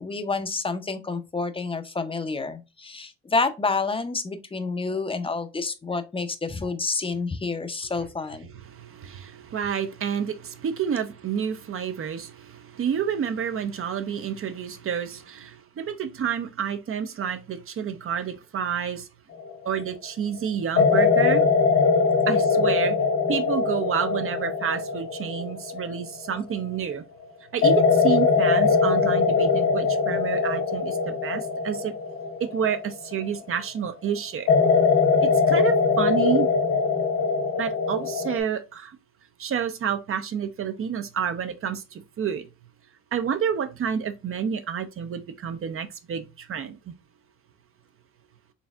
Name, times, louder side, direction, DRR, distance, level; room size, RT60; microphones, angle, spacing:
voice 1, 0.0-8.5, left 3 dB, 20° left, 0.5 m, -29 dB
voice 2, 8.5-19.1 19.6-21.4 22.3-22.9 23.3-27.0 27.5-31.9 32.4-34.5 35.2-36.5 37.6-38.9 39.4-42.5 43.1-46.9, right 8 dB, 45° right, 0.6 m, -29 dB
sound 1, 19.4-19.8 20.8-26.7 27.6-33.6 34.5-38.4, left 5 dB, 60° left, 0.9 m, -22 dB
4.0 x 3.3 x 2.3 m
cardioid pair, 90°, 30 cm